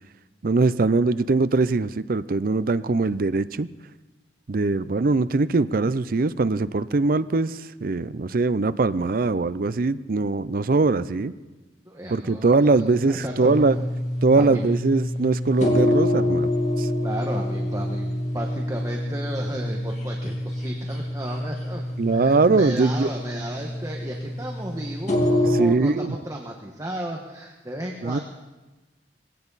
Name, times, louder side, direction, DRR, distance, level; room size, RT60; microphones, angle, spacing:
voice 1, 0.4-3.7 4.5-11.3 12.1-13.8 14.2-16.5 16.8-16.9 22.0-23.1 25.5-26.1 28.0-28.2, right 3 dB, 55° right, 15 dB, 0.5 m, -21 dB
voice 2, 11.8-13.9 14.4-14.6 17.0-28.2, right 1 dB, 20° right, 0 dB, 1.3 m, -34 dB
sound 1, 13.4-25.6, left 1 dB, 40° left, 2.6 m, -26 dB
20.0 x 17.0 x 4.1 m, 1.1 s
head